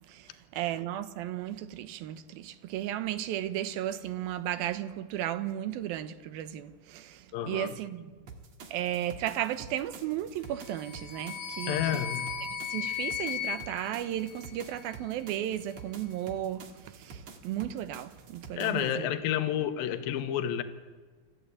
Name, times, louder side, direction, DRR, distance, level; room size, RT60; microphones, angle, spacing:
voice 1, 0.1-8.2 8.7-12.0 12.4-19.1, right 12 dB, 75° right, 2.7 m, -35 dB
voice 2, 7.3-7.7 11.7-12.3 18.6-20.6, left 10 dB, 75° left, 2.9 m, -30 dB
sound 1, 8.3-18.9, right 5 dB, 50° right, 2.7 m, -48 dB
sound 2, 10.6-14.9, left 8 dB, 55° left, 2.8 m, -37 dB
28.0 x 14.5 x 8.5 m
omnidirectional pair, 4.4 m